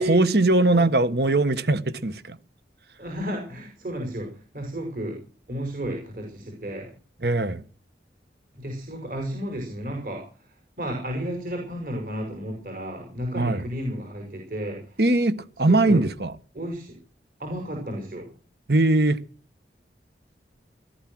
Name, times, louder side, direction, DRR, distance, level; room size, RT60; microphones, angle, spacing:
voice 1, 0.0-2.4 7.2-7.6 13.4-13.6 15.0-16.3 18.7-19.2, right 2 dB, 70° right, 1.4 m, -21 dB
voice 2, 3.0-5.2 5.5-6.9 8.5-15.0 15.7-16.0 16.5-16.9 17.4-18.3, equal, 50° right, 5.5 m, -32 dB
18.5 x 12.5 x 6.3 m
head